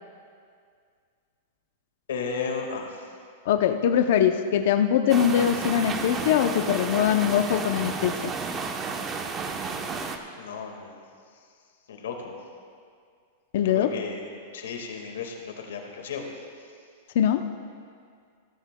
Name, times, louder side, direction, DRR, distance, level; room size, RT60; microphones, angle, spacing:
voice 1, 2.1-3.0 10.3-11.0 11.9-12.3 13.6-14.3 14.5-16.2, left 5 dB, 90° left, 2 dB, 1.7 m, -34 dB
voice 2, 3.5-8.3 13.5-13.9 17.1-17.4, left 9 dB, 65° left, 6 dB, 0.6 m, -22 dB
sound 1, 5.1-10.2, right 4 dB, 25° right, 0.8 m, -32 dB
16.5 x 13.5 x 2.2 m, 2.2 s
hypercardioid pair, 140°, 0 cm